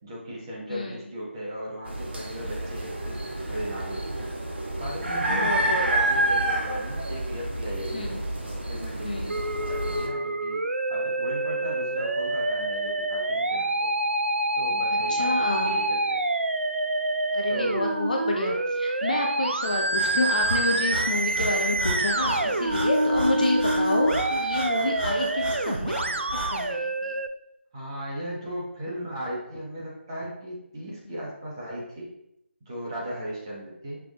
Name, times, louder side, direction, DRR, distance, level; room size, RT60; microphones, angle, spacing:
voice 1, 0.0-4.3 4.8-10.6 10.9-13.9 14.6-16.2 17.5-17.8 27.7-32.1 32.7-34.0, equal, 20° right, -5 dB, 1.1 m, -37 dB
voice 2, 0.7-1.1 5.3-5.8 7.9-8.2 9.0-9.3 14.9-15.8 17.3-27.2 31.1-31.2, left 2 dB, 40° left, 0 dB, 0.6 m, -29 dB
Marberlla Guanacaste Costa Rica, 1.9-10.1, right 1 dB, 55° right, 0.9 m, -29 dB
Musical instrument, 9.3-27.3, right 2 dB, 70° right, 0.4 m, -27 dB
Breathing, 19.9-26.7, equal, ahead, 1.4 m, -34 dB
5.9 x 3.3 x 2.4 m, 0.79 s
figure-of-eight pair, 160°, 7 cm